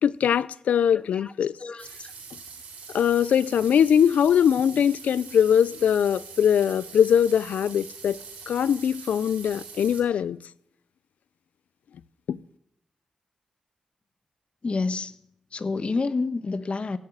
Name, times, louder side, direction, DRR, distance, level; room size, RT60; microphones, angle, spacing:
voice 1, 0.0-1.5 2.9-8.2 8.5-10.4 12.3-12.4, left 8 dB, 85° left, 0.5 m, -21 dB
voice 2, 1.6-2.1 14.6-15.1 15.5-17.0, left 3 dB, 50° left, 1.3 m, -28 dB
sound 1, 1.8-10.0, right 5 dB, 85° right, 3.8 m, -43 dB
16.5 x 7.5 x 8.9 m
cardioid pair, 45°, 3 cm